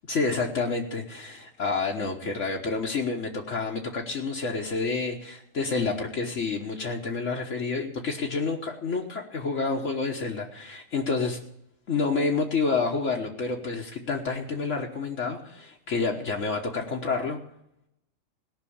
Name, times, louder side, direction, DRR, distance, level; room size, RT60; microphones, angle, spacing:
voice 1, 0.1-11.4 11.9-17.4, left 4 dB, 70° left, 0 dB, 1.6 m, -29 dB
17.5 x 6.0 x 8.6 m, 0.80 s
omnidirectional pair, 1.3 m